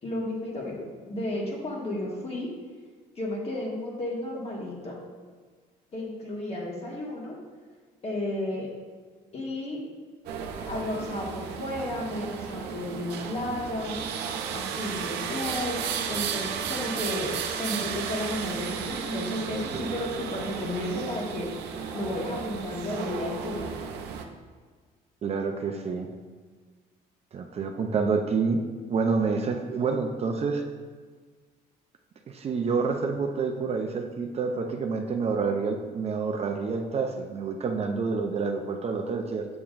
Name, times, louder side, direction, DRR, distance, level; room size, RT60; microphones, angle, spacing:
voice 1, 0.0-2.5 3.1-5.0 5.9-7.4 8.0-8.7 9.3-9.8 10.6-14.0 14.5-21.5 21.9-23.9, left 1 dB, 35° left, -2 dB, 1.6 m, -33 dB
sound 1, 10.3-24.3, right 7 dB, 80° right, 0.6 m, -34 dB
voice 2, 25.2-26.1 27.3-28.6 28.9-30.6 32.3-39.5, right 4 dB, 40° right, 4 dB, 0.5 m, -28 dB
7.1 x 6.9 x 2.5 m, 1.5 s
cardioid pair, 110°, 17 cm